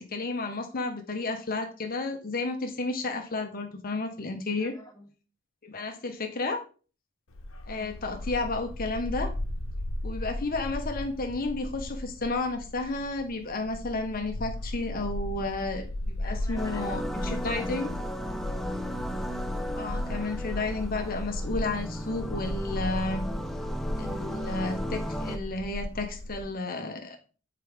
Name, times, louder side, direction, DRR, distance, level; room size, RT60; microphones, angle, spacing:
voice 1, 0.0-4.7 5.6-6.6 7.7-9.3 10.0-17.9 19.7-23.2 24.0-27.2, left 3 dB, 45° left, 5 dB, 0.9 m, -32 dB
voice 2, 4.6-5.1 7.7-7.9 16.0-18.0, left 1 dB, 15° left, -2 dB, 1.7 m, -49 dB
Bark, 7.3-26.4, left 1 dB, 80° left, 1.0 m, -36 dB
sound 1, 16.6-25.4, equal, ahead, 0.5 m, -36 dB
7.5 x 4.7 x 3.4 m, 0.37 s
head